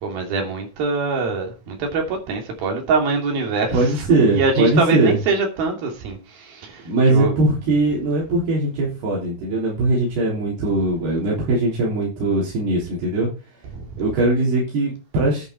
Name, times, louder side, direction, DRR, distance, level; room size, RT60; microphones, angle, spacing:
voice 1, 0.0-3.8 4.1-6.8 7.1-7.3 13.7-13.8, right 4 dB, 70° right, 4.7 m, -23 dB
voice 2, 3.7-5.2 6.8-13.3 14.0-15.5, right 2 dB, 85° right, 5.4 m, -20 dB
10.5 x 9.1 x 4.6 m
omnidirectional pair, 4.5 m